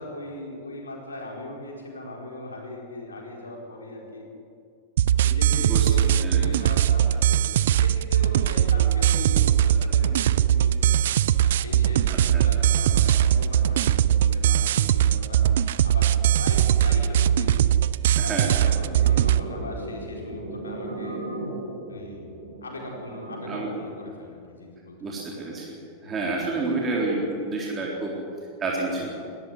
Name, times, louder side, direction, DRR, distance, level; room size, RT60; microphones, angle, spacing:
voice 1, 0.0-4.3 5.2-11.0 11.4-15.4 15.8-17.7 18.2-21.2 21.9-22.3 22.6-25.2 26.0-26.2 28.9-29.2, left 2 dB, 75° left, 0 dB, 4.6 m, -39 dB
sound 1, 5.0-19.4, right 10 dB, 60° right, 0.5 m, -21 dB
voice 2, 5.6-5.9 6.2-6.4 12.1-12.4 18.2-18.6 23.4-23.7 25.0-25.8 26.0-28.1 28.6-29.2, right 3 dB, 20° right, -3 dB, 3.9 m, -29 dB
sound 2, 18.9-23.9, right 1 dB, 75° right, 2.9 m, -36 dB
19.0 x 14.0 x 9.7 m, 2.4 s
figure-of-eight pair, 90°, 0 cm